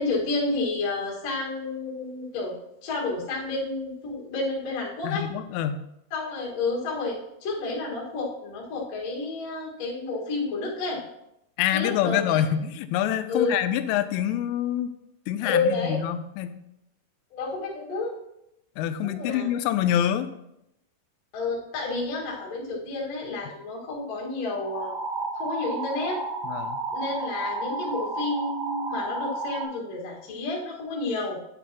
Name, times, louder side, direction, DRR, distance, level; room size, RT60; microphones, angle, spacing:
voice 1, 0.0-2.6 2.8-5.3 6.1-11.0 11.7-12.4 13.3-13.6 15.4-16.0 17.3-18.1 19.0-19.5 21.3-24.9 25.3-26.2 26.9-31.4, left 3 dB, 55° left, -4 dB, 2.0 m, -30 dB
voice 2, 5.0-5.8 11.6-14.9 15.3-16.6 18.8-20.3 26.4-26.8, left 10 dB, 85° left, 11 dB, 3.0 m, -26 dB
sound 1, 24.6-29.6, right 2 dB, 55° right, 2.3 m, -32 dB
9.9 x 9.1 x 3.0 m, 0.83 s
omnidirectional pair, 5.7 m